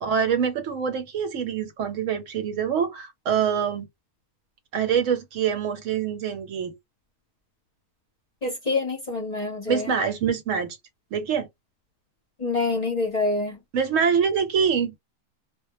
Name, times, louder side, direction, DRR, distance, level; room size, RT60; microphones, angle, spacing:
voice 1, 0.0-3.9 4.7-6.8 9.7-10.8 11.1-11.5 13.7-15.0, right 7 dB, 70° right, 1.0 m, -25 dB
voice 2, 8.4-9.9 12.4-13.6, left 3 dB, 35° left, 0.7 m, -26 dB
2.2 x 2.1 x 2.9 m
omnidirectional pair, 1.4 m